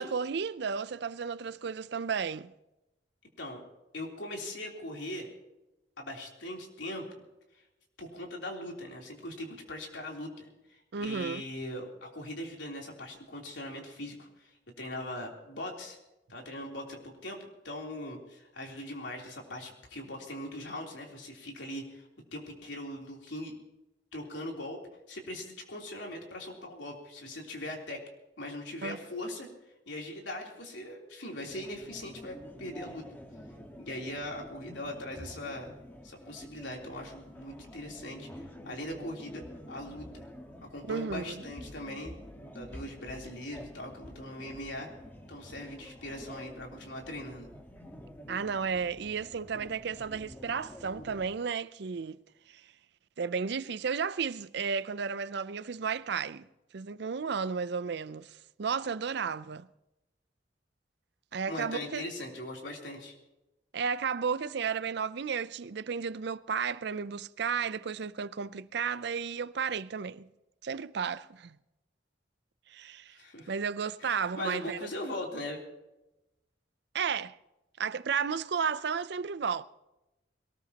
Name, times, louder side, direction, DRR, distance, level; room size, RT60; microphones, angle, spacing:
voice 1, 0.0-2.5 10.9-11.4 28.8-29.0 40.9-41.4 48.3-52.2 52.5-52.6 53.2-56.5 56.7-59.7 61.3-62.0 63.7-70.3 70.6-71.6 72.7-73.2 73.5-74.8 76.9-77.4 77.8-79.6, right 6 dB, 65° right, 0.5 m, -33 dB
voice 2, 3.9-5.3 6.0-7.3 8.0-14.5 14.8-16.0 16.3-23.5 24.1-24.8 25.1-28.0 28.4-29.5 29.9-33.1 33.8-35.7 36.0-40.3 40.6-44.9 45.3-47.5 61.5-63.1 73.1-73.5 74.0-75.6, left 1 dB, 80° left, 3.4 m, -40 dB
sound 1, 31.5-51.3, equal, 10° left, 1.5 m, -48 dB
22.0 x 19.0 x 2.9 m
head